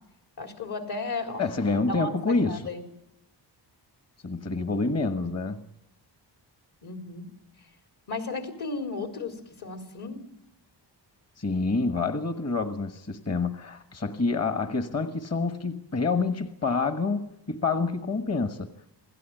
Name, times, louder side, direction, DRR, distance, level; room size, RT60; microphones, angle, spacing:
voice 1, 0.4-2.8 6.8-7.3 8.1-10.2, left 3 dB, 60° left, 4.2 m, -35 dB
voice 2, 1.4-2.6 4.2-5.6 11.4-18.7, left 3 dB, 35° left, 1.5 m, -27 dB
28.5 x 17.5 x 9.2 m
wide cardioid pair, 125°, 43 cm